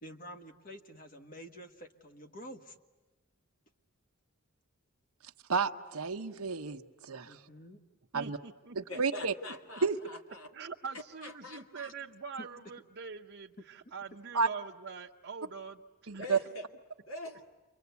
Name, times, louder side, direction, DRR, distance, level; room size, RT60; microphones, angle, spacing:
voice 1, 0.0-2.8 7.3-7.8 12.4-12.5, equal, 40° left, 5 dB, 1.6 m, -48 dB
voice 2, 5.5-7.4 8.1-8.4 8.7-9.3 9.8-10.0 14.3-14.5 16.1-16.4, right 5 dB, 80° right, 6 dB, 1.0 m, -31 dB
voice 3, 8.1-9.0 10.5-15.8 16.1-16.5, right 5 dB, 55° right, -1 dB, 0.9 m, -44 dB
voice 4, 8.9-10.5 11.2-11.9 16.2-16.7 17.1-17.4, left 2 dB, 65° left, 3 dB, 2.5 m, -44 dB
29.5 x 24.0 x 8.3 m, 1.2 s
head